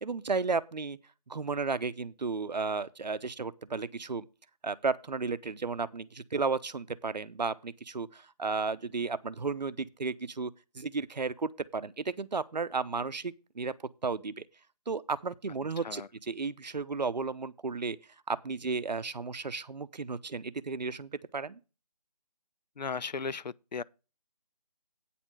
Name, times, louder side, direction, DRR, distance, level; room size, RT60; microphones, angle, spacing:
voice 1, 0.0-1.0 1.3-4.3 4.6-13.7 14.0-14.4 14.9-18.0 18.3-21.6, right 4 dB, 90° right, 0.8 m, -33 dB
voice 2, 15.8-16.1 22.8-23.8, left 5 dB, 85° left, 0.5 m, -36 dB
9.1 x 4.3 x 7.5 m
figure-of-eight pair, 165°, 21 cm